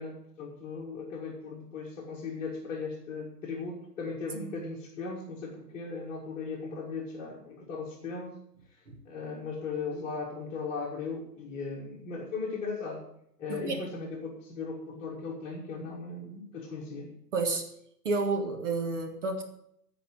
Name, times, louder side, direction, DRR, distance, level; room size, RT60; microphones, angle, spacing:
voice 1, 0.0-8.4 9.0-13.0 13.4-17.1, left 4 dB, 15° left, -6 dB, 1.9 m, -37 dB
voice 2, 13.5-13.9 17.3-17.7 18.0-19.4, right 3 dB, 45° right, 3 dB, 2.0 m, -30 dB
15.0 x 5.0 x 7.7 m, 0.73 s
figure-of-eight pair, 125°, 48 cm